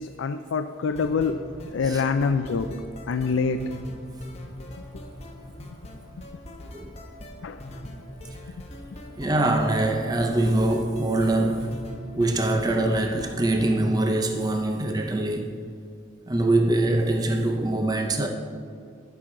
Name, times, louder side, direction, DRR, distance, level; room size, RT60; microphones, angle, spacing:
voice 1, 0.0-1.4 1.7-3.8 7.4-7.6, left 5 dB, 80° left, 7 dB, 0.4 m, -26 dB
sound 1, 0.9-13.9, equal, 30° left, 0.9 m, -41 dB
voice 2, 9.2-11.8 12.1-15.5 16.3-18.3, right 2 dB, 20° right, 3 dB, 0.6 m, -23 dB
18.0 x 6.2 x 3.8 m, 2.2 s
head